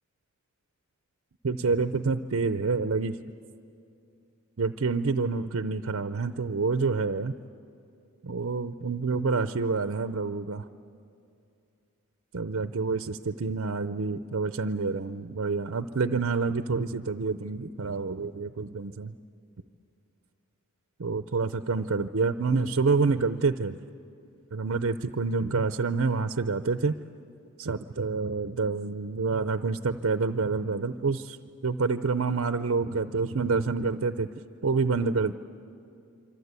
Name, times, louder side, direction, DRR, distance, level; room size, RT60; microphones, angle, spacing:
voice 1, 1.4-3.2 4.6-7.3 8.2-10.6 12.3-19.1 21.0-23.8 24.5-26.9 27.6-31.4 31.6-34.3 34.6-35.3, right 4 dB, 65° right, 10 dB, 0.6 m, -27 dB
27.5 x 25.0 x 8.2 m, 2.6 s
head